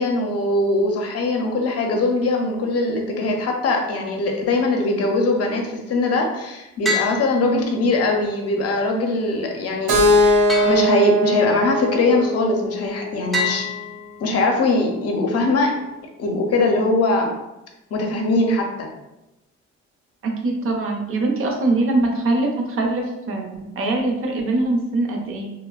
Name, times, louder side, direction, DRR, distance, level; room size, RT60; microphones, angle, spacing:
voice 1, 0.0-13.7 14.2-15.7 16.2-17.4 17.9-18.9, left 2 dB, 55° left, 2 dB, 0.6 m, -21 dB
sound 1, 6.9-8.1 10.5-11.6 13.3-14.6, left 1 dB, ahead, 0.4 m, -28 dB
Keyboard (musical), 9.9-13.8, left 1 dB, 85° right, 0.7 m, -20 dB
voice 2, 20.2-25.5, right 2 dB, 45° right, 1 dB, 0.6 m, -22 dB
2.7 x 2.0 x 2.3 m, 0.94 s
cardioid pair, 90°, 30 cm